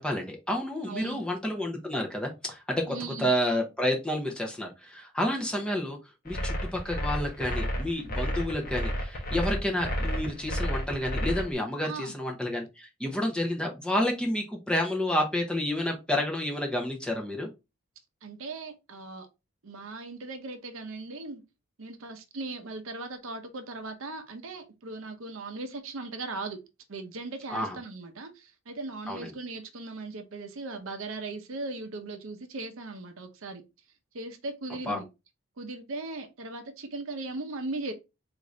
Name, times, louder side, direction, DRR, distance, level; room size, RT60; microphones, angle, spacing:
voice 1, 0.0-6.0 6.2-17.5 27.5-27.8 29.1-29.3 34.9-35.0, left 1 dB, 5° left, 0.6 m, -30 dB
voice 2, 0.8-1.2 2.9-3.3 11.8-12.1 18.2-19.3 19.6-21.4 21.8-26.6 26.9-33.6 34.1-35.1 35.6-37.9, right 3 dB, 65° right, 0.6 m, -38 dB
sound 1, 6.3-11.5, equal, 40° left, 0.8 m, -31 dB
3.8 x 2.5 x 3.1 m
head